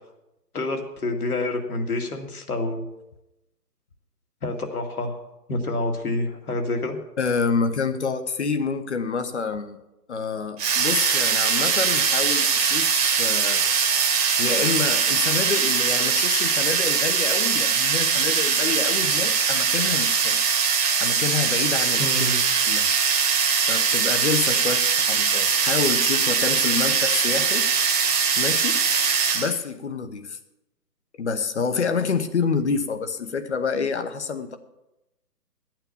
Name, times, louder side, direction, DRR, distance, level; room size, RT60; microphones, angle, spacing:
voice 1, 0.5-2.8 4.4-5.2 5.5-7.0 22.0-22.4, left 2 dB, 65° left, 4 dB, 2.2 m, -27 dB
voice 2, 7.2-9.8 10.1-12.9 13.2-13.6 14.4-20.4 21.0-22.3 22.7-22.9 23.7-27.6 28.4-28.8 29.3-30.4 31.2-34.6, left 5 dB, 45° left, 9 dB, 1.1 m, -27 dB
sound 1, 10.6-29.6, right 6 dB, 25° right, 1.4 m, -21 dB
11.5 x 9.0 x 7.1 m, 0.93 s
figure-of-eight pair, 150°, 48 cm